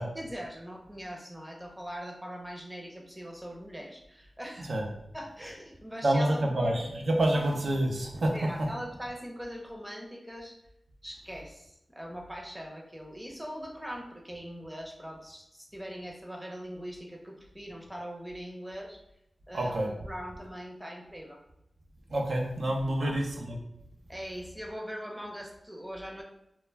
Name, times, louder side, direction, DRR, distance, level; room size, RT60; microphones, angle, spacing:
voice 1, 0.1-4.7 5.1-6.8 7.3-7.5 8.3-10.6 11.0-19.0 19.5-21.4 23.0-23.3 24.1-26.2, equal, 10° right, 0 dB, 0.6 m, -41 dB
voice 2, 6.0-8.3 19.5-19.9 22.1-23.6, right 1 dB, 75° right, 1 dB, 0.5 m, -27 dB
2.2 x 2.1 x 3.2 m, 0.81 s
cardioid pair, 40°, 0 cm